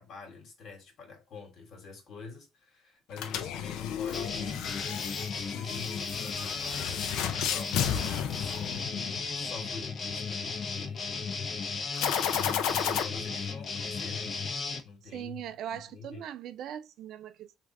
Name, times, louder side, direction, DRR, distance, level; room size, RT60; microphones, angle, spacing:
voice 1, 0.0-5.0 5.4-11.7 12.3-14.4 14.8-16.2, left 4 dB, 60° left, 1.3 m, -46 dB
sound 1, 3.1-9.3 11.9-13.0, left 9 dB, 85° left, 0.4 m, -33 dB
sound 2, 4.1-14.8, left 4 dB, 40° left, 0.6 m, -35 dB
voice 2, 15.1-17.6, right 10 dB, 70° right, 0.3 m, -40 dB
3.2 x 2.4 x 2.5 m
cardioid pair, 120°, 0 cm